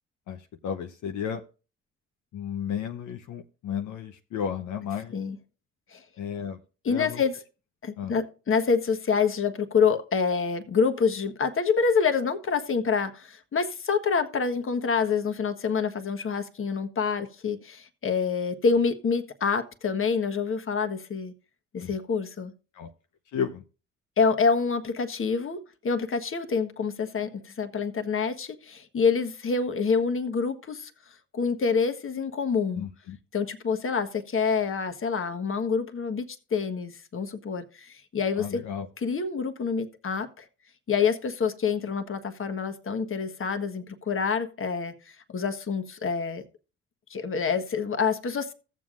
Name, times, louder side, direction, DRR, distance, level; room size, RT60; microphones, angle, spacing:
voice 1, 0.3-1.4 2.3-5.2 6.2-6.6 6.8-7.2 8.0-8.1 21.8-21.9 22.7-22.9 23.3-23.6 32.7-33.2 38.4-38.9, left 8 dB, 65° left, 0.9 m, -33 dB
voice 2, 6.8-7.4 7.8-21.3 21.7-22.5 24.2-30.9 31.3-32.9 33.3-38.6 39.0-40.4 40.9-46.4 47.1-48.5, left 5 dB, 40° left, 1.4 m, -27 dB
15.0 x 7.4 x 2.5 m
supercardioid pair, 60°, 32 cm